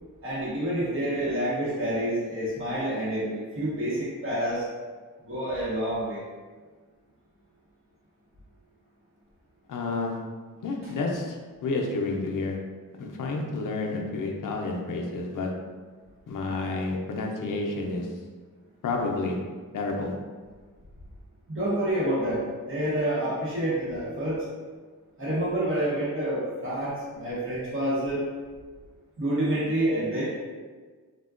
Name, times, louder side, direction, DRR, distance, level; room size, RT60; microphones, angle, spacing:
voice 1, 0.2-4.7 5.3-6.2 21.5-24.4 25.2-28.2 29.2-30.2, right 1 dB, 40° right, -10 dB, 0.8 m, -28 dB
voice 2, 9.7-10.2 10.6-12.6 13.0-15.5 16.3-18.1 18.8-19.4 19.7-20.1, left 3 dB, 70° left, 0 dB, 0.5 m, -30 dB
3.4 x 2.1 x 2.4 m, 1.5 s
wide cardioid pair, 140°, 33 cm